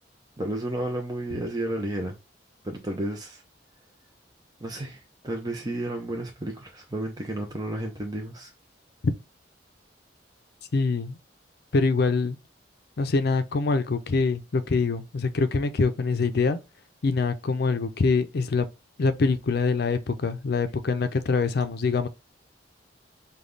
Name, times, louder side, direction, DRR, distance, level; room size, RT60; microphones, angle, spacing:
voice 1, 0.4-2.2 2.6-3.4 4.6-8.5, right 1 dB, 20° right, 0.6 m, -32 dB
voice 2, 10.7-11.2 11.7-12.4 13.0-16.6 17.0-18.7 19.0-22.1, left 4 dB, 60° left, 0.5 m, -24 dB
5.2 x 2.3 x 3.8 m
head